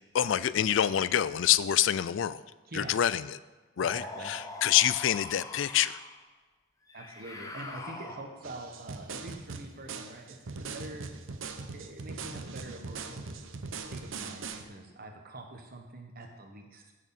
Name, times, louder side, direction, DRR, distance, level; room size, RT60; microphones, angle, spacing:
voice 1, 0.1-2.4 2.7-3.4 3.8-6.0, left 10 dB, 70° left, 16 dB, 0.4 m, -26 dB
voice 2, 2.7-3.0 3.9-4.3 6.9-11.1 11.7-13.5 13.9-16.9, right 2 dB, 50° right, 3 dB, 1.4 m, -45 dB
sound 1, 3.8-6.2 6.9-8.6, left 2 dB, 20° left, 0.8 m, -43 dB
sound 2, 8.4-14.6, right 4 dB, 90° right, 0.8 m, -41 dB
15.5 x 6.4 x 4.2 m, 1.2 s
head